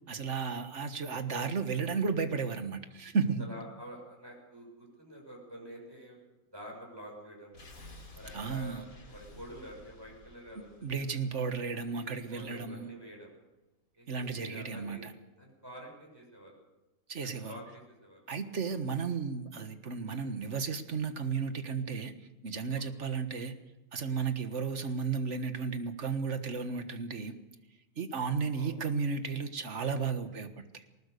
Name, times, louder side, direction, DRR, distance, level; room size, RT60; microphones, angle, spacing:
voice 1, 0.1-3.5 8.3-8.8 10.8-12.9 14.1-15.1 17.1-17.6 18.3-22.1 22.4-23.6 23.9-27.4 28.0-30.8, right 5 dB, 60° right, 9 dB, 1.8 m, -34 dB
voice 2, 3.4-6.2 6.5-7.5 8.1-11.2 11.9-13.3 14.0-15.1 15.4-16.6 17.2-18.2 18.6-18.7 22.7-23.1 28.5-28.7, equal, 15° right, -2 dB, 6.6 m, -48 dB
sound 1, 7.5-12.5 12.8-12.9, left 1 dB, 90° left, 3.3 m, -53 dB
20.0 x 19.5 x 6.8 m, 1.0 s
omnidirectional pair, 1.4 m